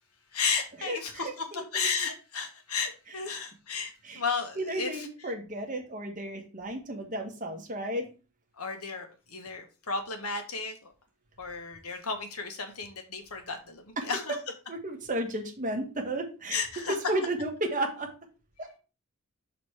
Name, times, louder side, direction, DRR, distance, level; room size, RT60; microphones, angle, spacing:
voice 1, 0.3-5.3 8.6-10.9 11.4-14.4 16.5-16.9, left 5 dB, 90° left, 5 dB, 1.4 m, -34 dB
voice 2, 0.8-1.6 4.0-4.2 4.6-8.1 14.7-16.6 17.1-18.1 18.6-18.8, right 1 dB, 35° right, 2 dB, 1.6 m, -33 dB
6.2 x 4.1 x 4.8 m, 0.34 s
head